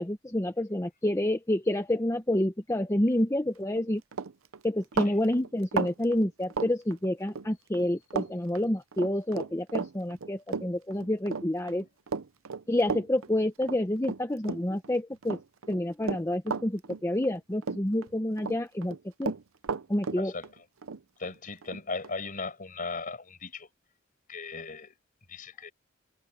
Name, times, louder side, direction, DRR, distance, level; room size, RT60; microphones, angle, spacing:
voice 1, 0.0-4.0 4.6-11.8 12.7-15.4 15.7-19.3 19.9-20.3, left 1 dB, 15° left, 0.8 m, -28 dB
Run, 3.6-3.8 4.1-7.5 7.7-8.3 8.6-14.9 15.2-17.4 17.6-18.6 18.8-22.2, right 5 dB, 85° right, 0.7 m, -34 dB
voice 2, 20.2-20.5 21.2-23.7 24.3-24.9 25.3-25.7, left 4 dB, 45° left, 6.1 m, -37 dB
head